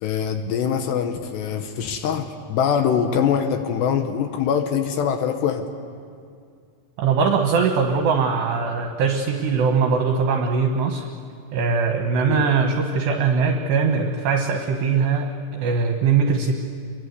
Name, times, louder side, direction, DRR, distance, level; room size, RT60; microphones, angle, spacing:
voice 1, 0.0-5.7 12.3-12.5, left 7 dB, 75° left, 7 dB, 2.7 m, -23 dB
voice 2, 7.0-11.1 11.5-16.6, right 5 dB, 70° right, 3 dB, 2.9 m, -21 dB
26.0 x 22.5 x 8.1 m, 2.2 s
omnidirectional pair, 5.9 m